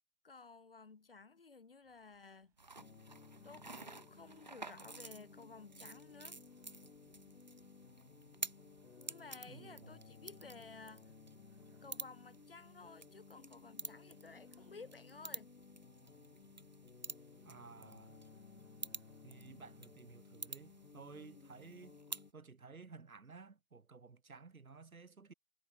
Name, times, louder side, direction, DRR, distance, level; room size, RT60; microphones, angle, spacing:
voice 1, 0.2-2.5 3.4-6.4 9.0-11.1 11.8-15.5, left 4 dB, 45° left, 0.9 m, -55 dB
sound 1, 1.8-20.9, right 14 dB, 5° right, 6.2 m, -81 dB
sound 2, 2.6-22.3, right 3 dB, 30° right, 0.9 m, -51 dB
sound 3, 2.8-22.3, left 5 dB, 70° left, 2.9 m, -59 dB
voice 2, 9.5-10.0 17.4-18.2 19.2-22.0 22.3-25.3, right 4 dB, 85° right, 4.6 m, -55 dB
hypercardioid pair, 180°, 41 cm